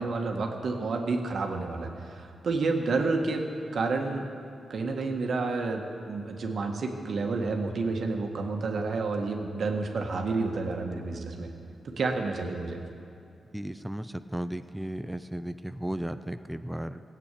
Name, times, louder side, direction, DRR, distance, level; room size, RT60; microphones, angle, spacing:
voice 1, 0.0-4.3 4.7-11.5 11.8-12.8, right 3 dB, 65° right, 3 dB, 1.7 m, -30 dB
voice 2, 13.5-17.0, right 1 dB, 5° right, 10 dB, 0.5 m, -35 dB
18.0 x 8.5 x 8.4 m, 2.6 s
cardioid pair, 95°, 0 cm